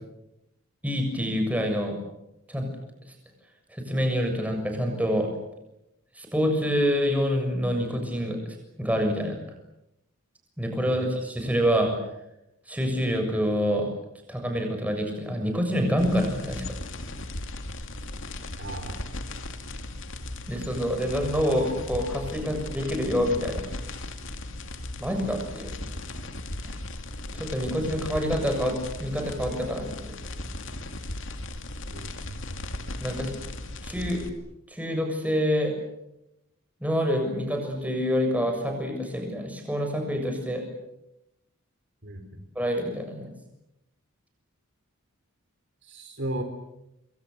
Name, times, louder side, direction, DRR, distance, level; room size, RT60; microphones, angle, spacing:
voice 1, 0.8-2.0 2.5-2.7 3.7-5.3 6.2-9.4 10.6-11.9 12.7-13.9 14.3-16.6 20.5-23.6 25.0-25.7 27.3-30.1 33.0-33.4 33.8-34.2 34.7-35.7 36.8-40.6 42.6-43.3, equal, 5° right, 3 dB, 7.0 m, -27 dB
sound 1, 16.0-34.3, left 2 dB, 60° left, 2.7 m, -37 dB
voice 2, 18.6-19.0 31.9-32.4 42.0-42.4 45.8-46.4, right 1 dB, 55° right, 6 dB, 3.9 m, -36 dB
28.0 x 24.0 x 8.0 m, 0.89 s
head